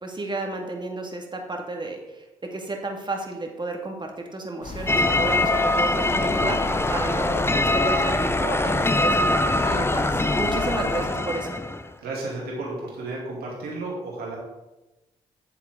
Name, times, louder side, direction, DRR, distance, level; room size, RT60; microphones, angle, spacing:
voice 1, 0.0-2.2 2.5-6.6 6.9-11.6, right 2 dB, 30° right, 2 dB, 2.1 m, -32 dB
sound 1, 4.6-11.1, left 3 dB, 50° left, 1.6 m, -35 dB
sound 2, 4.9-11.9, left 2 dB, 15° left, 0.6 m, -23 dB
voice 2, 12.0-14.4, right 2 dB, 75° right, -3 dB, 2.6 m, -33 dB
8.4 x 7.3 x 3.7 m, 1.0 s
hypercardioid pair, 40°, 16 cm